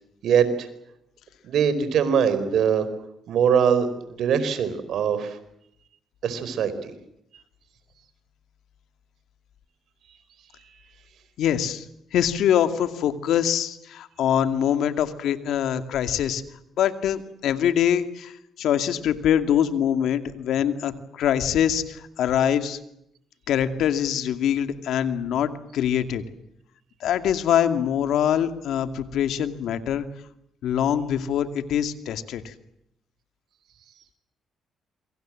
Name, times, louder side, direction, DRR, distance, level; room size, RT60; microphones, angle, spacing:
voice 1, 0.2-0.7 1.4-2.9 3.3-5.4 6.2-6.9, right 7 dB, 70° right, 12 dB, 4.6 m, -22 dB
voice 2, 11.4-11.9 12.1-16.4 16.8-22.8 23.5-26.2 27.0-30.0 30.6-32.5, left 9 dB, 80° left, 9 dB, 2.4 m, -24 dB
27.5 x 24.5 x 7.7 m, 0.77 s
cardioid pair, 90°, 0 cm